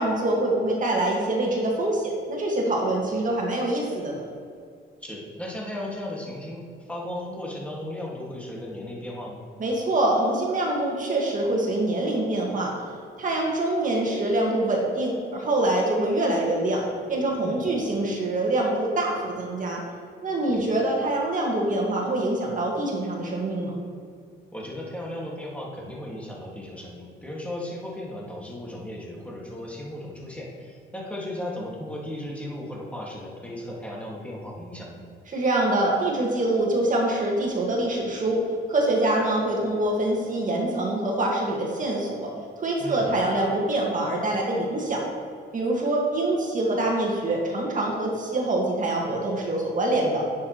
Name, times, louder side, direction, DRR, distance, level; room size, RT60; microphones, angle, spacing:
voice 1, 0.0-4.2 9.6-12.7 13.2-19.8 20.2-23.8 35.3-38.4 38.7-42.3 42.6-45.0 45.5-50.2, right 1 dB, 40° right, -2 dB, 1.9 m, -25 dB
voice 2, 5.0-9.4 17.4-17.7 20.5-20.8 24.5-35.0 42.8-43.1, left 1 dB, 5° left, -3 dB, 2.1 m, -36 dB
9.4 x 7.5 x 3.2 m, 2.2 s
cardioid pair, 90°, 20 cm